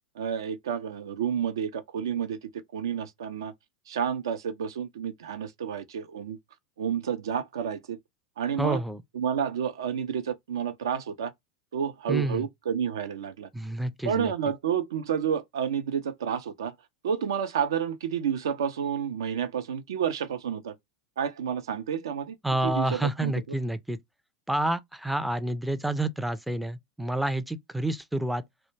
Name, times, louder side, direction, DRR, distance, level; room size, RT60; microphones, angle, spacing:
voice 1, 0.2-2.4 2.7-3.5 3.9-6.4 6.8-8.0 8.4-8.8 9.1-11.3 11.7-13.5 14.0-16.7 17.0-20.7 21.2-22.4 22.6-23.3, right 8 dB, 70° right, 0.4 m, -30 dB
voice 2, 8.6-9.0 12.1-12.4 13.5-14.3 22.4-24.0 24.5-28.4, right 1 dB, ahead, 0.4 m, -29 dB
2.2 x 2.0 x 3.1 m
figure-of-eight pair, 85°, 2 cm